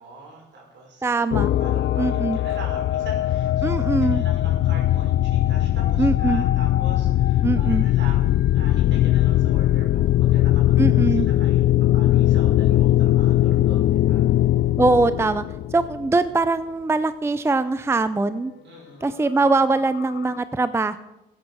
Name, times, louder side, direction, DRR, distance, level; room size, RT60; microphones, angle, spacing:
voice 1, 0.0-14.3 18.6-19.2, right 3 dB, 65° right, 0 dB, 5.6 m, -43 dB
voice 2, 1.0-1.5 2.0-2.4 3.6-4.2 6.0-6.5 7.4-7.8 10.8-11.3 14.8-15.4 15.7-18.5 19.0-21.0, right 3 dB, 15° right, 13 dB, 0.5 m, -22 dB
sound 1, 1.3-16.2 19.4-19.5 19.8-20.4, left 14 dB, 65° left, 0.5 m, -20 dB
15.0 x 9.7 x 6.3 m, 0.96 s
cardioid pair, 90°, 20 cm